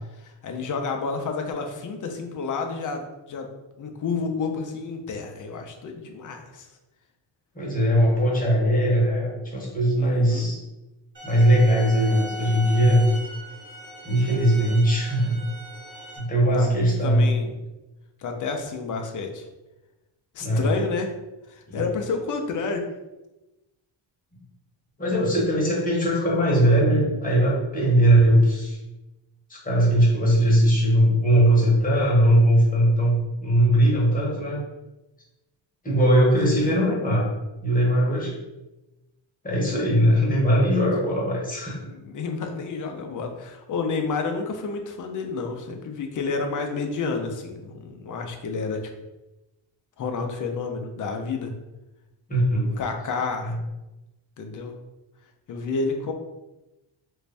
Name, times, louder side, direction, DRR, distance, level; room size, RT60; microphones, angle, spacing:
voice 1, 0.1-3.5 3.8-6.7 10.0-10.5 16.5-17.5 18.2-19.5 20.3-21.1 21.5-22.8 36.5-36.8 41.9-48.8 50.0-51.5 52.7-53.6 54.4-54.7 55.5-56.1, left 4 dB, 45° left, 4 dB, 0.5 m, -30 dB
voice 2, 7.5-10.6 11.2-13.0 14.0-15.4 16.2-17.3 20.4-20.7 21.7-21.8 25.0-28.8 29.5-34.6 35.8-37.3 37.6-38.3 39.4-41.8 52.3-52.7 53.4-53.5, equal, 20° left, -4 dB, 1.0 m, -20 dB
sound 1, 11.1-16.2, left 1 dB, 25° right, 1.4 m, -39 dB
3.1 x 2.6 x 3.3 m, 1.0 s
cardioid pair, 145°, 47 cm